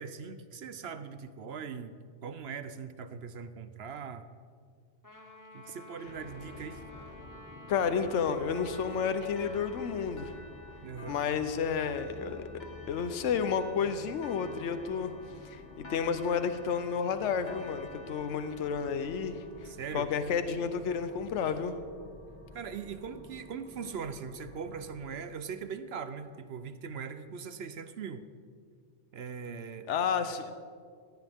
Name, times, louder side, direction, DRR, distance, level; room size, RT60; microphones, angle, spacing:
voice 1, 0.0-2.0 2.2-4.3 5.5-6.8 10.8-11.2 19.6-20.1 22.5-28.2 29.1-29.9, right 6 dB, 65° right, 11 dB, 0.9 m, -40 dB
Trumpet, 5.0-10.1, left 1 dB, 15° left, 1.4 m, -51 dB
sound 1, 6.0-25.0, left 2 dB, 15° right, 2.4 m, -51 dB
voice 2, 7.7-10.4 11.1-12.5 12.9-15.1 15.4-19.7 19.9-21.7 29.9-30.5, left 6 dB, 80° left, 10 dB, 1.1 m, -31 dB
sound 2, 7.7-20.8, left 4 dB, 40° left, 1.4 m, -51 dB
18.5 x 16.0 x 3.6 m, 2.1 s
omnidirectional pair, 1.2 m